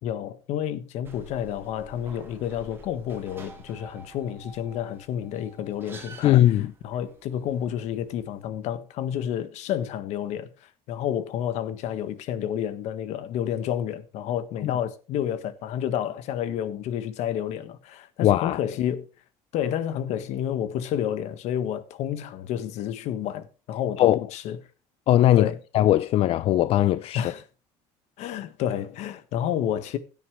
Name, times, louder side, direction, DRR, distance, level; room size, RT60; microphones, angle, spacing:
voice 1, 0.0-6.4 6.8-19.1 19.5-24.6 25.3-25.6 27.1-27.4 28.2-30.0, left 10 dB, 65° left, 1.6 m, -30 dB
sound 1, 1.0-8.4, right 2 dB, 20° right, 2.9 m, -48 dB
voice 2, 6.2-6.7 14.6-14.7 18.2-18.6 24.0-24.2 25.1-27.3, left 13 dB, 50° left, 0.5 m, -20 dB
16.0 x 9.8 x 3.2 m
cardioid pair, 145°, 12 cm